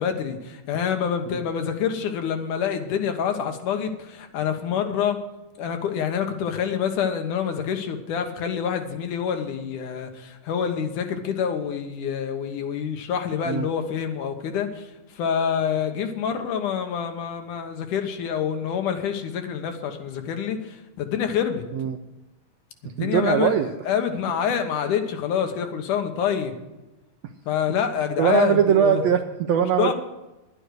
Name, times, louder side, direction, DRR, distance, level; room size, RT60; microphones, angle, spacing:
voice 1, 0.0-5.2 5.6-14.9 15.1-21.6 22.8-23.5 23.9-26.5 27.5-29.0 29.8-29.9, left 8 dB, 75° left, 6 dB, 2.7 m, -26 dB
voice 2, 23.0-23.7 28.2-29.9, right 9 dB, 80° right, 6 dB, 1.6 m, -21 dB
10.5 x 9.8 x 6.5 m, 1.0 s
omnidirectional pair, 3.7 m